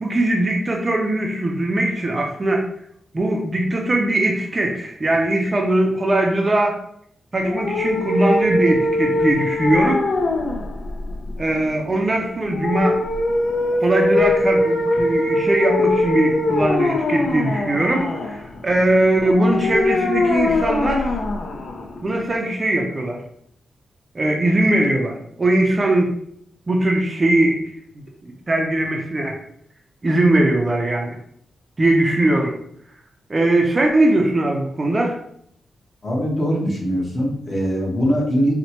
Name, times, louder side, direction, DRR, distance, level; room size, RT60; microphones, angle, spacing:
voice 1, 0.0-2.7 3.1-6.8 7.3-10.0 11.4-13.0 13.8-21.2 22.0-23.2 24.1-26.1 26.7-27.7 28.2-29.4 30.0-31.2 31.8-32.5 33.3-35.2, right 1 dB, 25° right, 1 dB, 0.4 m, -20 dB
sound 1, 7.4-22.4, left 2 dB, 75° left, 0.5 m, -22 dB
voice 2, 36.0-38.5, equal, 35° left, -2 dB, 0.9 m, -21 dB
4.2 x 2.1 x 2.8 m, 0.69 s
wide cardioid pair, 145°, 0 cm